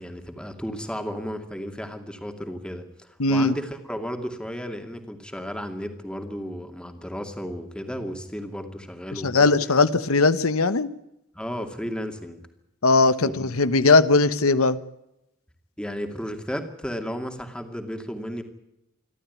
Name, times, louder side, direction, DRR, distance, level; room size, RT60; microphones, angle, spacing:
voice 1, 0.0-9.5 11.3-12.4 13.2-13.5 15.8-18.4, equal, 5° left, 6 dB, 2.4 m, -33 dB
voice 2, 3.2-3.5 9.2-10.9 12.8-14.8, left 3 dB, 90° left, 13 dB, 1.1 m, -19 dB
27.5 x 12.5 x 9.4 m, 0.86 s
head